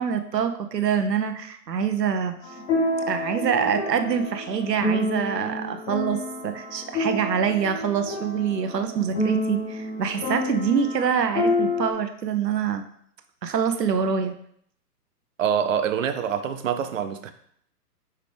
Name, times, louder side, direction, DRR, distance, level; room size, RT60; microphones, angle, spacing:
voice 1, 0.0-2.6 3.1-12.8 13.4-14.3, right 7 dB, 90° right, 7 dB, 0.8 m, -25 dB
sound 1, 2.4-11.9, left 1 dB, 10° left, 0.6 m, -28 dB
voice 2, 15.4-17.3, right 8 dB, 55° right, 9 dB, 0.8 m, -25 dB
5.7 x 5.0 x 3.3 m, 0.66 s
hypercardioid pair, 135°, 48 cm